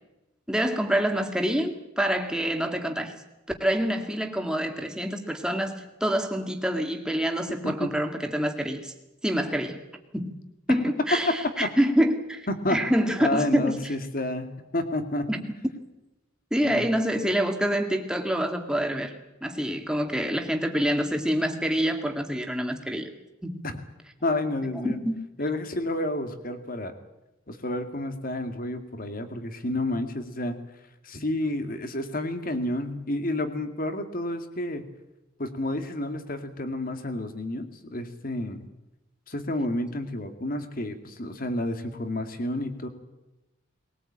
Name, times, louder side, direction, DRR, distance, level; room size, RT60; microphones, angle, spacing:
voice 1, 0.5-3.1 3.6-8.9 9.2-9.8 10.1-10.4 10.7-13.8 15.3-15.4 16.5-19.1 19.4-23.1 23.4-23.6 24.8-25.2, equal, 5° right, 4 dB, 2.1 m, -26 dB
voice 2, 13.2-14.5 14.7-15.3 16.6-16.8 23.6-23.8 24.2-25.0 25.4-26.9 27.5-30.6 31.0-34.8 35.4-38.7 39.3-42.9, left 1 dB, 50° left, 8 dB, 2.3 m, -30 dB
21.0 x 19.0 x 8.8 m, 0.97 s
head